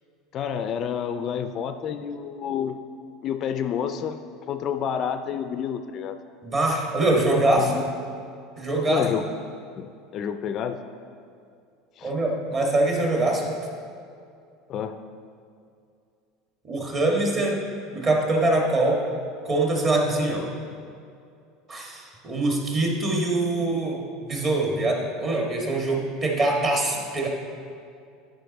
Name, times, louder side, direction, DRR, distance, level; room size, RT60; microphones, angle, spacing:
voice 1, 0.3-2.8 3.2-4.2 4.5-6.2 7.6-7.8 8.9-9.2 9.8-10.8 12.0-12.1 14.7-15.0, left 8 dB, 45° left, 9 dB, 0.3 m, -29 dB
voice 2, 6.4-7.8 8.6-9.0 12.0-13.5 16.7-17.6 17.9-19.0 19.4-20.4 21.7-27.3, right 2 dB, 30° right, 0 dB, 1.5 m, -23 dB
10.0 x 5.1 x 4.0 m, 2.4 s
supercardioid pair, 125°, 0 cm